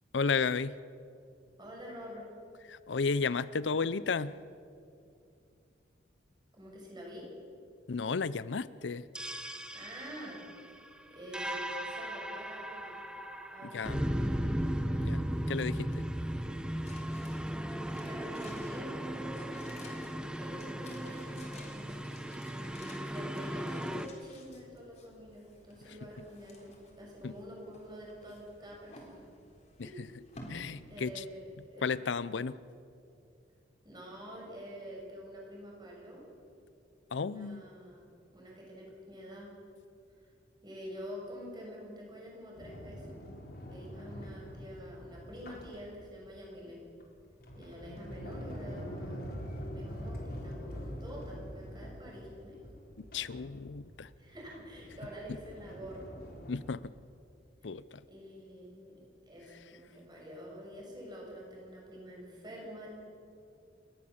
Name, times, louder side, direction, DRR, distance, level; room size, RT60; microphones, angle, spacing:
voice 1, 0.1-0.8 2.7-4.4 7.9-9.0 13.6-14.1 15.0-15.2 15.5-16.1 25.9-26.0 27.2-27.3 29.8-30.1 30.5-31.3 31.8-32.6 37.1-37.6 53.0-54.1 56.5-56.9 57.6-58.0, left 5 dB, 75° left, 17 dB, 0.6 m, -33 dB
voice 2, 1.6-2.2 3.7-3.8 6.5-7.3 9.7-10.4 11.1-13.0 13.5-14.1 18.0-20.1 20.3-29.3 29.8-30.1 30.9-31.9 33.8-36.2 37.2-39.5 40.6-43.2 43.7-46.8 47.5-49.3 49.7-52.7 54.2-56.2 57.6-57.7 58.0-59.0 59.3-62.9, equal, 25° right, -2 dB, 6.6 m, -47 dB
sound 1, 9.2-24.1, equal, 5° right, 0.9 m, -36 dB
sound 2, 16.8-32.0 32.3-32.4, left 1 dB, 40° left, 4.0 m, -55 dB
Sliding door, 42.6-46.4 47.0-56.6, equal, 55° left, 4.4 m, -44 dB
29.5 x 13.5 x 7.2 m, 2.5 s
head